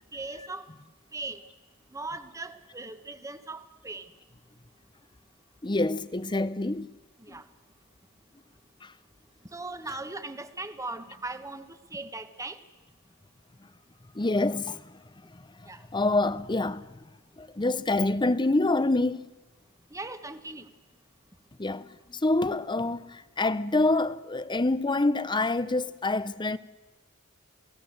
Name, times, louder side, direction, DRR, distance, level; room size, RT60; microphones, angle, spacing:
voice 1, 0.1-0.7 1.1-1.4 1.9-4.1 7.2-7.5 9.5-12.6 15.7-15.8 19.9-20.7, right 2 dB, 15° right, 1.3 m, -39 dB
voice 2, 5.6-6.9 7.3-7.4 8.8-8.9 9.9-10.0 14.1-17.0 17.4-19.3 21.6-26.6, left 2 dB, 20° left, 0.8 m, -27 dB
28.5 x 18.5 x 7.9 m
head